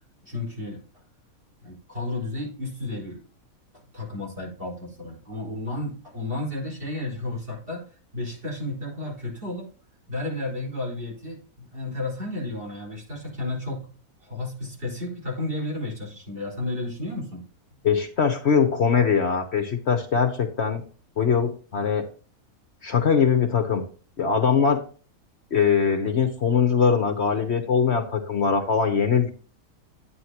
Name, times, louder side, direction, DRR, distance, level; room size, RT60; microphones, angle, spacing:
voice 1, 0.2-0.8 1.6-3.2 3.9-7.8 8.1-9.7 10.1-13.9 14.2-17.4, left 2 dB, 40° right, -3 dB, 5.0 m, -32 dB
voice 2, 17.8-20.8 21.2-22.0 22.8-23.8 24.2-24.8 25.5-29.3, left 6 dB, 55° left, 5 dB, 1.1 m, -22 dB
10.5 x 9.5 x 2.9 m, 0.39 s
omnidirectional pair, 1.5 m